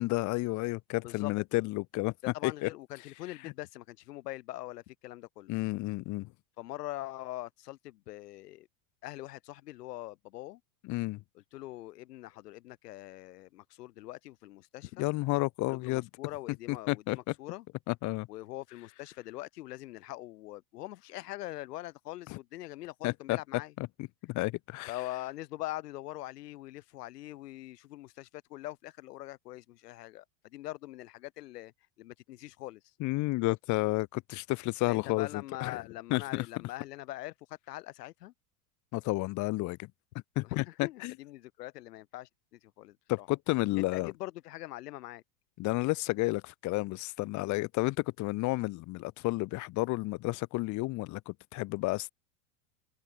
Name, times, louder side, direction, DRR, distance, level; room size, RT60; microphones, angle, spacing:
voice 1, 0.0-2.1 2.4-2.7 3.4-3.5 5.5-6.3 10.8-11.2 15.0-16.1 16.7-17.3 17.9-18.3 22.3-22.4 23.0-23.4 23.8-24.9 33.0-35.8 36.1-36.5 38.9-39.9 40.4-41.1 43.1-44.1 45.6-52.1, left 21 dB, 40° left, 1.0 m, -31 dB
voice 2, 2.3-5.5 6.6-8.7 9.0-10.6 11.5-15.1 15.7-17.7 18.3-23.7 24.9-31.7 32.0-32.8 34.9-38.3 40.4-43.3 43.8-45.2, left 16 dB, 80° left, 3.8 m, -43 dB
supercardioid pair, 135°, 47 cm